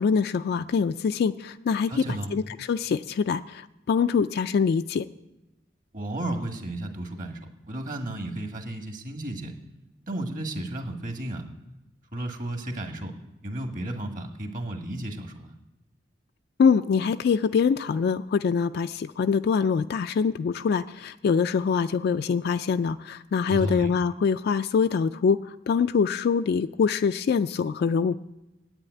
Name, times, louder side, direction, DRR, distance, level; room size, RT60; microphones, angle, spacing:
voice 1, 0.0-2.0 2.3-5.1 16.6-28.2, left 6 dB, 60° left, 10 dB, 0.3 m, -24 dB
voice 2, 1.9-2.3 5.9-7.4 7.6-9.5 10.1-11.4 12.1-13.1 13.4-15.5 23.5-23.9, right 1 dB, 50° right, 4 dB, 1.6 m, -33 dB
8.9 x 8.6 x 9.1 m, 0.98 s
head